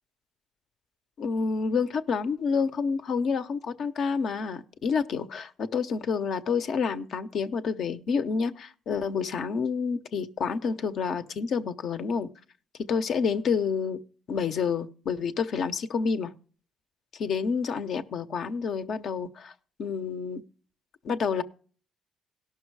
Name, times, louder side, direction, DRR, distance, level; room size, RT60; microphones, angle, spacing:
voice 1, 1.2-12.3 12.9-14.0 14.3-16.3 17.2-19.5 19.8-20.4 21.0-21.4, left 5 dB, 65° left, 9 dB, 0.8 m, -28 dB
17.0 x 6.1 x 4.6 m, 0.42 s
cardioid pair, 90°, 0 cm